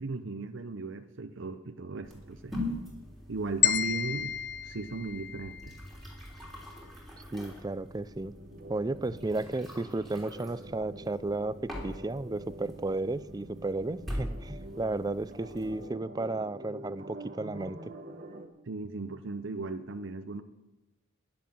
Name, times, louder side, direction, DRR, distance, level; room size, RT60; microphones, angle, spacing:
voice 1, 0.0-2.5 3.3-4.4 4.6-5.8 18.7-20.4, right 3 dB, 60° right, 8 dB, 0.7 m, -37 dB
sound 1, 2.0-15.9, left 1 dB, ahead, 3.3 m, -43 dB
sound 2, 3.6-5.8, left 11 dB, 50° left, 0.8 m, -30 dB
voice 2, 7.2-8.3 8.7-17.9, right 2 dB, 20° right, 16 dB, 0.4 m, -33 dB
sound 3, 8.1-18.5, right 1 dB, 40° right, 1.2 m, -46 dB
11.0 x 10.5 x 7.6 m, 1.1 s
head